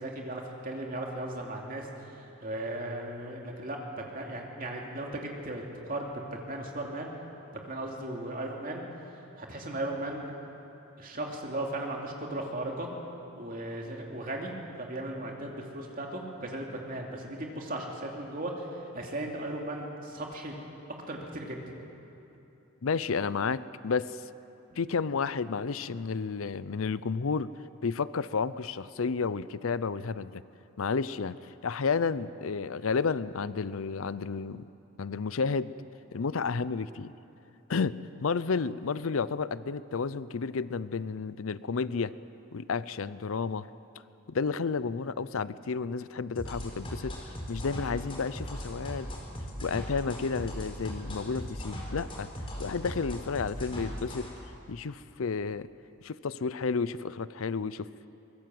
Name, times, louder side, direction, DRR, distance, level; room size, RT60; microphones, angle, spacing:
voice 1, 0.0-7.1 7.5-8.8 9.1-10.3 11.0-12.9 13.4-20.5 21.1-21.6 24.7-24.8, right 1 dB, 40° right, 0 dB, 2.9 m, -37 dB
voice 2, 22.8-24.3 24.8-27.5 27.8-30.4 30.8-34.6 35.0-35.7 36.1-37.1 37.7-42.1 42.5-43.7 44.3-49.1 49.6-52.3 52.6-54.3 54.7-55.7 56.0-58.1, left 5 dB, 80° left, 17 dB, 0.6 m, -31 dB
sound 1, 46.4-54.3, equal, 25° left, 4.3 m, -38 dB
23.5 x 20.5 x 7.8 m, 2.9 s
head